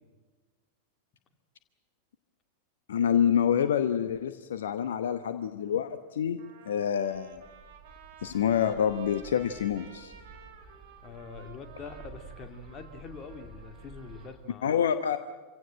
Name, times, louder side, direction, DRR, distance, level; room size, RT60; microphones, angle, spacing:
voice 1, 2.9-6.4 6.7-7.4 8.2-10.1 14.6-15.2, left 8 dB, 60° left, 10 dB, 1.0 m, -27 dB
Trumpet, 5.7-5.8 6.4-14.3, right 6 dB, 55° right, 3.8 m, -53 dB
Bird, 7.1-14.4, right 3 dB, 5° left, 4.3 m, -51 dB
voice 2, 11.0-14.8, left 4 dB, 30° left, 6 dB, 2.4 m, -44 dB
26.0 x 17.0 x 8.9 m, 1.3 s
figure-of-eight pair, 90°, 0 cm